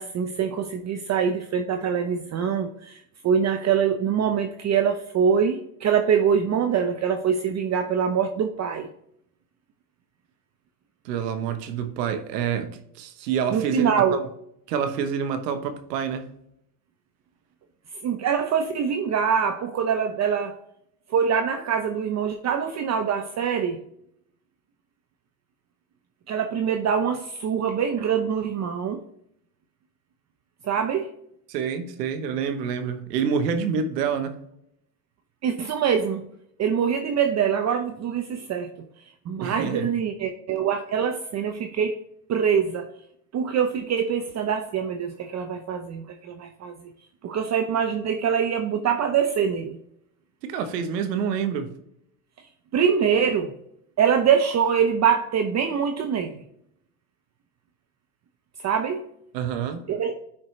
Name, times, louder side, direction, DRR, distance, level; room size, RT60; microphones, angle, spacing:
voice 1, 0.0-8.9 13.5-14.2 18.0-20.6 21.1-23.8 26.3-29.0 30.6-31.1 35.4-36.3 36.6-38.9 39.3-42.0 42.3-42.9 43.3-46.7 47.2-49.8 52.7-53.5 54.0-56.4 58.6-59.1 59.9-60.1, right 7 dB, 35° right, 6 dB, 0.7 m, -24 dB
voice 2, 11.0-14.3 14.7-16.3 31.5-34.4 39.4-39.9 50.4-51.7 59.3-59.9, right 7 dB, 85° right, 9 dB, 1.0 m, -27 dB
9.8 x 4.5 x 3.2 m, 0.74 s
hypercardioid pair, 90°, 47 cm